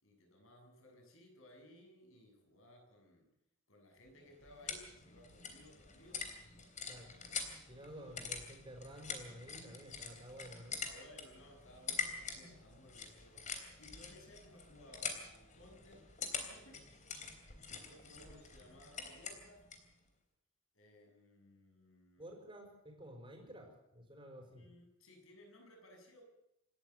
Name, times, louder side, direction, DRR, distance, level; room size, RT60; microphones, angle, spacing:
voice 1, 0.0-3.3 3.7-7.4 10.8-13.5 13.8-16.9 17.6-19.7 20.7-22.2 24.3-26.2, left 1 dB, 65° left, 2 dB, 7.1 m, -60 dB
sound 1, 4.1-19.9, left 5 dB, 35° left, 3.4 m, -46 dB
voice 2, 7.7-10.8 22.2-24.6, equal, 25° right, 3 dB, 5.3 m, -52 dB
28.0 x 13.0 x 8.1 m, 0.84 s
head